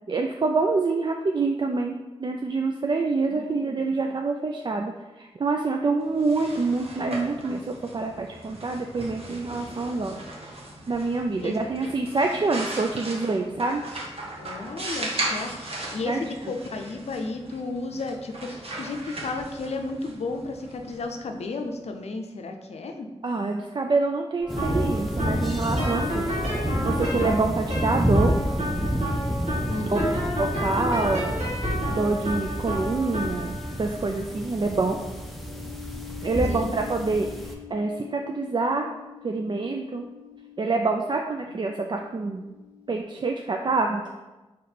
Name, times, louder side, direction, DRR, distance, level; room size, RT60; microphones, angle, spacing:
voice 1, 0.1-10.2 10.9-13.8 16.1-16.2 23.2-26.3 26.8-28.3 29.9-30.0 30.4-31.3 31.9-35.0 36.2-38.9 39.2-40.1 40.6-42.5 42.9-44.0, right 3 dB, 45° right, 2 dB, 0.4 m, -26 dB
voice 2, 3.2-4.0 11.4-11.6 14.4-23.1 29.7-30.2 36.5-36.8 41.5-41.6, left 3 dB, 75° left, 4 dB, 0.5 m, -33 dB
sound 1, 6.0-21.7, right 1 dB, 60° right, 1.0 m, -37 dB
sound 2, 24.4-41.6, equal, 90° right, 1.5 m, -33 dB
sound 3, 24.5-37.5, equal, ahead, 0.6 m, -29 dB
4.1 x 3.1 x 4.3 m, 1.1 s
cardioid pair, 55°, 11 cm